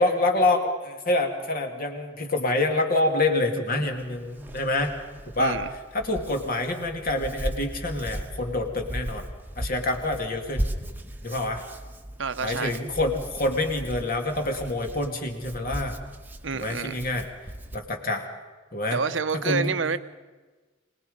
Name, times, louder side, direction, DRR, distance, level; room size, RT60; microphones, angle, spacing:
voice 1, 0.0-4.9 5.4-5.6 5.9-9.3 9.6-10.6 11.2-11.6 12.4-16.0 16.5-17.3 17.7-18.2 18.7-19.0 19.3-19.7, left 2 dB, 50° left, 2.4 m, -26 dB
Hands, 3.7-17.8, right 1 dB, 10° right, 1.2 m, -37 dB
voice 2, 5.4-5.7 12.2-12.8 16.4-17.0 18.9-20.0, right 5 dB, 75° right, 0.8 m, -28 dB
24.5 x 20.0 x 5.4 m
head